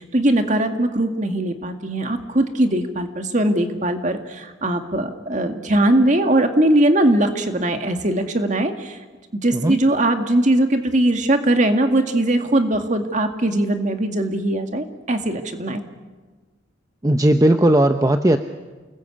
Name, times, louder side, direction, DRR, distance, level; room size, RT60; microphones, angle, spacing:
voice 1, 0.0-9.0 9.4-15.8, right 1 dB, 40° right, 6 dB, 2.1 m, -20 dB
voice 2, 17.0-18.4, right 1 dB, 20° right, 7 dB, 0.7 m, -16 dB
29.0 x 20.0 x 8.6 m, 1.3 s
head